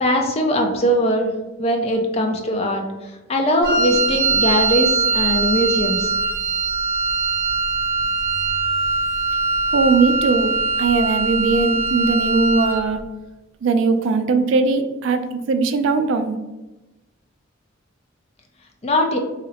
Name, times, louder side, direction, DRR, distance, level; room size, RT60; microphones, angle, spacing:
voice 1, 0.0-1.3 1.6-2.8 3.3-6.1 18.8-19.2, equal, 30° left, 3 dB, 0.4 m, -20 dB
Wind instrument woodwind instrument, 3.6-12.9, right 4 dB, 45° right, 1.0 m, -21 dB
voice 2, 9.7-13.0 13.6-16.4, right 4 dB, 70° right, 8 dB, 0.3 m, -19 dB
2.7 x 2.0 x 4.0 m, 1.1 s
head